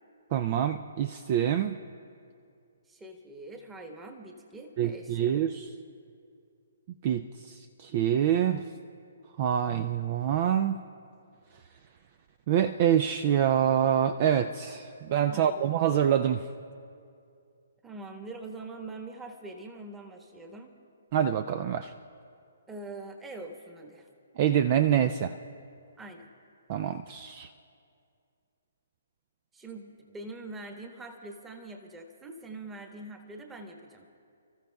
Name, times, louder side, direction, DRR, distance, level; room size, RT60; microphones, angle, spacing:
voice 1, 0.3-1.8 4.8-5.7 7.0-8.7 9.4-10.8 12.5-16.4 21.1-21.9 24.4-25.3 26.7-27.5, right 9 dB, 40° right, 11 dB, 0.4 m, -26 dB
voice 2, 2.9-5.3 15.3-15.7 17.8-20.7 22.7-24.1 26.0-26.3 29.5-34.1, right 2 dB, 10° right, 4 dB, 1.3 m, -43 dB
29.5 x 14.0 x 2.3 m, 2.4 s
figure-of-eight pair, 130°, 0 cm